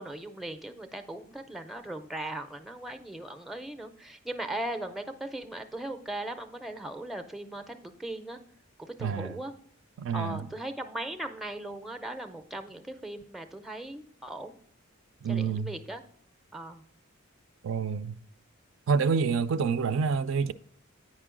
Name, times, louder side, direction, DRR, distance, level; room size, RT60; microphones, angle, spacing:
voice 1, 0.0-8.4 8.8-9.5 10.1-14.6 15.3-16.0 16.5-16.8, right 1 dB, ahead, 0.4 m, -38 dB
voice 2, 9.0-9.4 10.0-10.5 15.2-15.7 17.6-18.2 18.9-20.5, right 5 dB, 65° right, 0.3 m, -27 dB
8.8 x 5.3 x 3.7 m
head